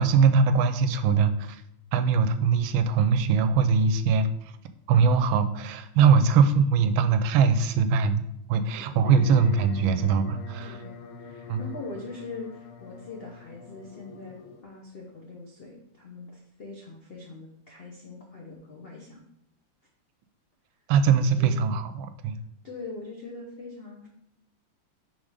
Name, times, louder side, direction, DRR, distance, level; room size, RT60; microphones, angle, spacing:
voice 1, 0.0-1.6 1.9-4.3 4.9-8.2 8.5-10.8 11.5-11.6 20.9-22.4, right 5 dB, 80° right, 10 dB, 1.3 m, -22 dB
voice 2, 6.1-6.4 8.6-9.0 10.6-19.2 21.3-21.5 22.6-24.1, left 3 dB, 70° left, -1 dB, 0.5 m, -42 dB
sound 1, 9.0-14.6, left 5 dB, 90° left, 1.5 m, -44 dB
5.2 x 3.7 x 4.8 m, 0.76 s
omnidirectional pair, 2.3 m